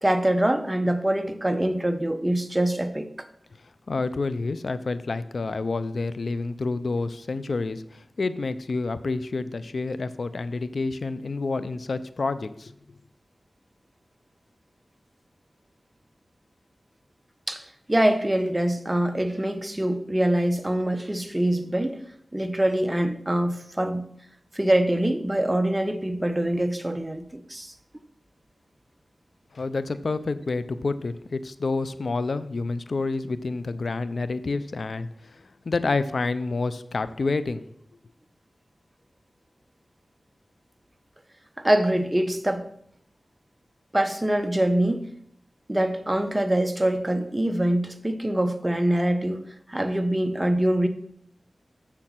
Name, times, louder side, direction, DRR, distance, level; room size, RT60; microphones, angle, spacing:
voice 1, 0.0-3.1 17.5-22.0 22.3-24.0 24.5-27.7 41.6-42.7 43.9-45.1 45.7-50.9, right 1 dB, 20° right, 0.9 m, -24 dB
voice 2, 3.9-12.7 29.5-37.6, left 3 dB, 70° left, 0.5 m, -28 dB
7.1 x 6.7 x 5.8 m
cardioid pair, 45°, 0 cm